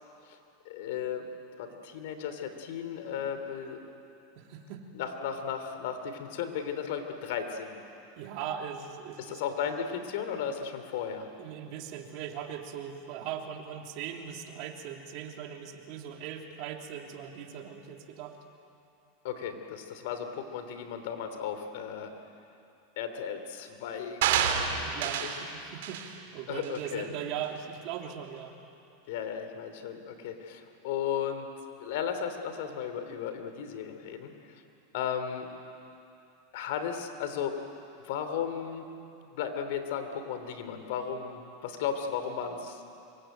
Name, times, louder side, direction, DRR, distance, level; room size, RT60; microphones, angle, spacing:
voice 1, 0.6-1.3 1.6-3.8 4.9-7.8 9.2-11.3 19.2-22.1 23.0-25.4 26.5-27.1 29.1-31.5 31.8-34.6 34.9-35.5 36.5-37.5 38.0-38.9 39.3-42.8, left 8 dB, 70° left, 8 dB, 3.2 m, -35 dB
voice 2, 4.3-4.8 8.1-9.4 11.4-18.4 24.8-28.5, right 9 dB, 55° right, 2 dB, 3.2 m, -39 dB
sound 1, 24.2-25.4 25.8-26.1 26.6-26.8, right 8 dB, 75° right, 2.8 m, -28 dB
25.5 x 23.0 x 9.3 m, 2.7 s
supercardioid pair, 120°, 0 cm